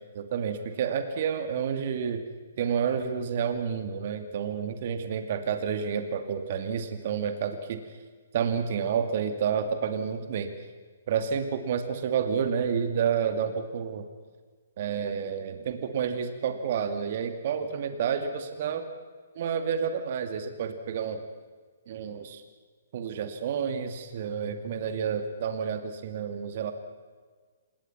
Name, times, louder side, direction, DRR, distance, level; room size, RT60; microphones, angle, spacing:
voice 1, 0.1-2.2 2.6-7.8 8.3-10.5 11.1-14.1 14.8-18.9 19.4-21.2 21.9-22.4 22.9-26.7, right 7 dB, 50° right, 8 dB, 2.5 m, -29 dB
27.5 x 21.0 x 5.9 m, 1.5 s
figure-of-eight pair, 130°, 0 cm